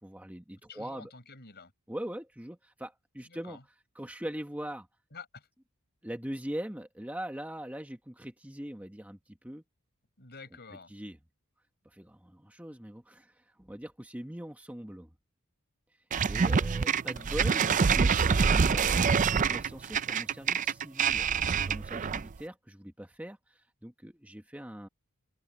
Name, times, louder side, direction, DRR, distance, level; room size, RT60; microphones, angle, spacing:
voice 1, 0.0-1.1 1.9-3.6 3.9-4.9 6.0-9.6 10.9-11.2 11.8-15.1 16.3-18.1 18.5-21.3 21.6-24.9, right 1 dB, 5° right, 1.2 m, -41 dB
voice 2, 0.7-1.7 3.2-3.6 5.1-5.5 10.2-10.9 16.1-16.6 16.9-17.3, left 4 dB, 50° left, 5.9 m, -50 dB
sound 1, 16.1-22.4, right 6 dB, 35° right, 0.4 m, -26 dB
open air
head